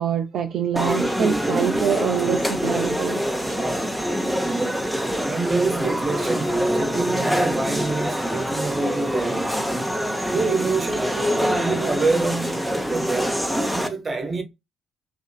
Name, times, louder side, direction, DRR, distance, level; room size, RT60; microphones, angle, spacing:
voice 1, 0.0-3.2, right 8 dB, 60° right, 0.4 m, -25 dB
sound 1, 0.8-13.9, equal, ahead, 0.6 m, -25 dB
voice 2, 5.3-9.7 10.3-13.4 13.7-14.4, right 3 dB, 35° right, 0.9 m, -26 dB
2.8 x 2.6 x 2.2 m
hypercardioid pair, 45°, 0 cm